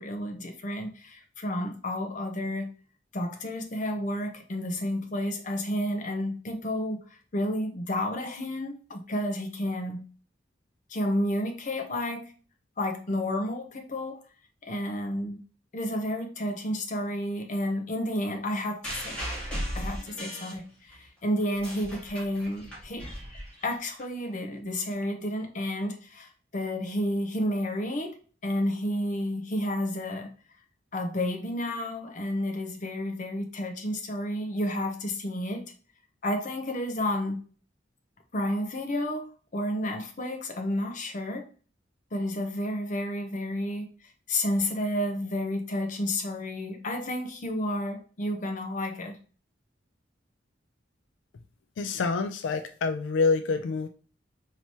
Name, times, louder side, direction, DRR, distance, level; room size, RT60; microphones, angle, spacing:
voice 1, 0.0-2.7 3.1-7.0 7.3-10.0 10.9-12.3 12.8-14.2 14.6-15.4 15.7-19.2 19.7-23.0 23.6-30.3 30.9-35.6 36.2-37.4 38.3-39.2 39.5-41.5 42.1-43.9 44.3-49.2, left 1 dB, 45° left, 4 dB, 0.7 m, -31 dB
sound 1, 18.8-21.1 21.4-24.0 24.9-25.0, equal, 5° left, 1.7 m, -37 dB
voice 2, 51.8-53.9, left 4 dB, 85° left, 7 dB, 0.4 m, -27 dB
4.6 x 2.9 x 2.8 m, 0.39 s
head